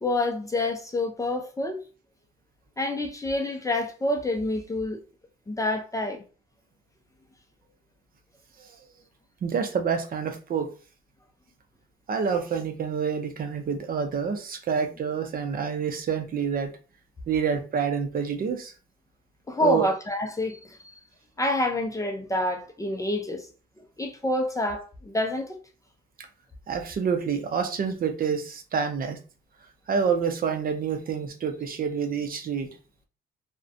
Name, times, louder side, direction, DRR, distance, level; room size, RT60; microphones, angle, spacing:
voice 1, 0.0-1.8 2.8-5.0 5.5-6.2 19.5-20.8 21.4-23.5 24.0-25.6, left 1 dB, 15° left, 0.4 m, -27 dB
voice 2, 9.4-10.7 12.1-16.7 17.3-18.7 19.6-19.9 26.2-26.3 26.7-29.2 29.9-32.7, right 6 dB, 45° right, 0.6 m, -27 dB
2.3 x 2.1 x 2.6 m
cardioid pair, 90°, 20 cm